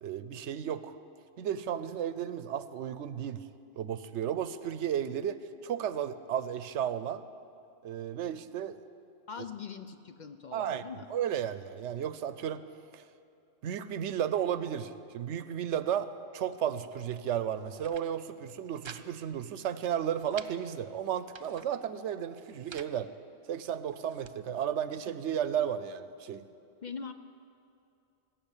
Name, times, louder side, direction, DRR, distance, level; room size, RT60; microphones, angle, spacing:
voice 1, 0.0-0.9 1.4-3.4 3.8-5.4 5.6-7.2 7.8-8.8 10.5-10.8 11.1-12.6 12.9-13.0 13.6-23.1 23.5-26.4, right 9 dB, 85° right, 13 dB, 1.0 m, -33 dB
voice 2, 9.3-11.1 26.8-27.1, left 6 dB, 55° left, 9 dB, 0.6 m, -42 dB
sound 1, 17.6-18.1 18.4-19.0 19.3-19.4 19.8-20.5 21.1-21.7 22.3-22.9 23.6-24.4, right 6 dB, 50° right, 0.3 m, -49 dB
18.5 x 7.3 x 8.9 m, 2.6 s
omnidirectional pair, 1.2 m